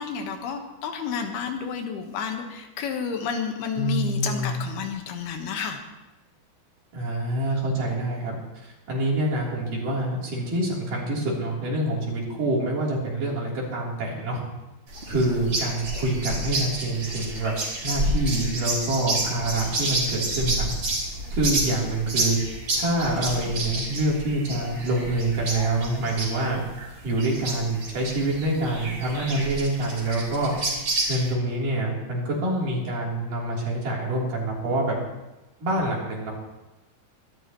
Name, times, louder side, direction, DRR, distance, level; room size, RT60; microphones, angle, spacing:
voice 1, 0.0-5.8, left 6 dB, 80° left, 4 dB, 3.3 m, -30 dB
voice 2, 3.7-4.6 6.9-8.4 8.6-14.4 15.1-17.5 17.8-20.7 21.3-22.4 22.8-26.6 27.0-35.0 35.6-36.3, right 1 dB, 60° right, -4 dB, 4.9 m, -26 dB
sound 1, 14.9-31.3, right 1 dB, 40° right, 4.5 m, -30 dB
23.5 x 13.0 x 3.0 m, 1.1 s
omnidirectional pair, 4.5 m